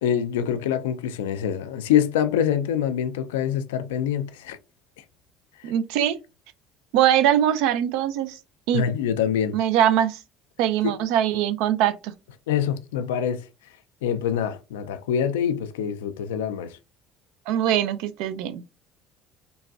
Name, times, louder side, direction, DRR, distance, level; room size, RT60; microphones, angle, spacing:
voice 1, 0.0-4.6 5.6-5.7 8.7-9.6 10.8-11.0 12.5-13.4 14.0-16.8, left 9 dB, 90° left, 0.3 m, -25 dB
voice 2, 5.6-6.2 6.9-8.4 8.7-8.8 9.5-10.2 10.6-12.1 17.5-18.6, right 10 dB, 75° right, 0.3 m, -22 dB
3.9 x 2.2 x 2.3 m
supercardioid pair, 75°, 0 cm